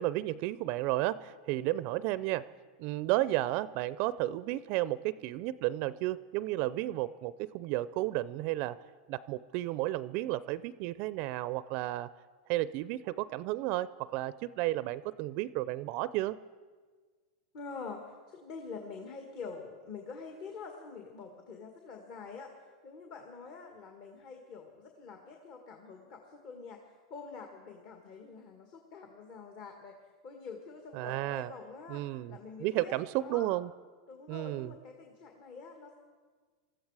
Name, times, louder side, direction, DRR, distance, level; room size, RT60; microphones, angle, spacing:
voice 1, 0.0-2.5 2.8-8.8 9.1-12.1 12.5-16.4 30.9-31.5 31.9-33.7 34.3-34.7, right 16 dB, 50° right, 17 dB, 0.4 m, -33 dB
voice 2, 17.5-22.5 22.8-26.8 27.1-30.0 30.2-32.0 32.3-33.6 34.1-36.0, left 4 dB, 50° left, 3 dB, 1.8 m, -46 dB
20.0 x 14.0 x 4.8 m, 1.5 s
hypercardioid pair, 120°, 3 cm